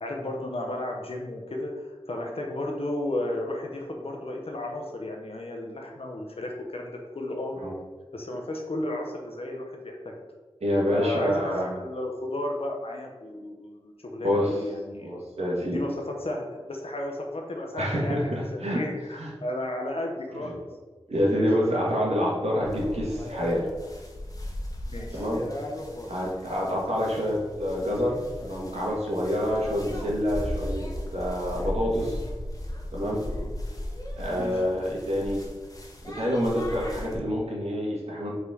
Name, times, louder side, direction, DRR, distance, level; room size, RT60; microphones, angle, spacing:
voice 1, 0.0-7.6 8.1-10.2 10.9-15.1 15.6-20.6 21.3-21.4 24.9-25.3 34.4-34.6, left 1 dB, 60° left, 1 dB, 1.1 m, -33 dB
voice 2, 10.6-11.8 14.2-14.6 15.0-15.8 17.8-18.8 19.2-19.3 21.1-23.7 25.1-25.4 26.1-32.2 32.9-33.2 34.2-35.4 36.1-38.3, equal, 80° right, -4 dB, 1.7 m, -27 dB
sound 1, 22.6-37.2, left 1 dB, 35° left, 1.2 m, -36 dB
5.2 x 4.2 x 4.9 m, 1.3 s
wide cardioid pair, 70°, 11 cm